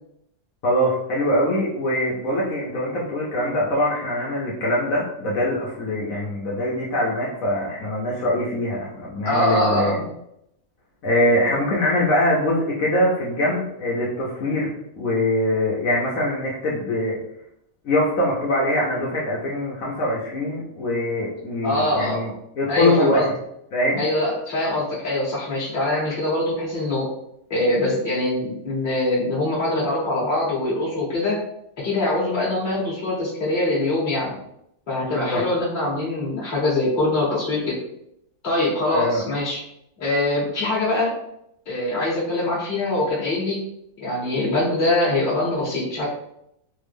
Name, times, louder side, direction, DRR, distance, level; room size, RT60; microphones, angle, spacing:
voice 1, 0.6-10.0 11.0-14.7 15.0-17.2 17.8-22.3 22.6-23.3 23.7-24.0 35.0-35.4 38.9-39.2, left 1 dB, 70° left, -5 dB, 1.1 m, -23 dB
voice 2, 9.2-10.0 21.6-22.2 22.7-23.3 24.0-27.1 27.5-31.4 31.8-34.3 34.9-37.8 38.4-39.6 40.0-41.1 41.7-43.6 44.0-46.1, left 2 dB, 35° left, -7 dB, 1.3 m, -23 dB
3.5 x 2.0 x 3.3 m, 0.77 s
omnidirectional pair, 1.5 m